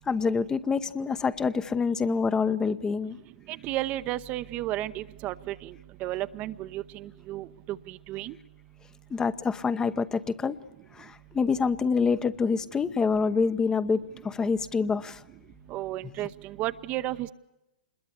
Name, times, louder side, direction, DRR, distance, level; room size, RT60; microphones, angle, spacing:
voice 1, 0.1-3.2 9.1-10.6 10.9-15.2, left 5 dB, 15° left, 13 dB, 0.9 m, -26 dB
voice 2, 3.5-5.7 6.0-8.3 15.7-17.3, right 15 dB, 35° right, 12 dB, 0.9 m, -33 dB
27.5 x 21.5 x 8.3 m, 0.93 s
figure-of-eight pair, 110°, 5 cm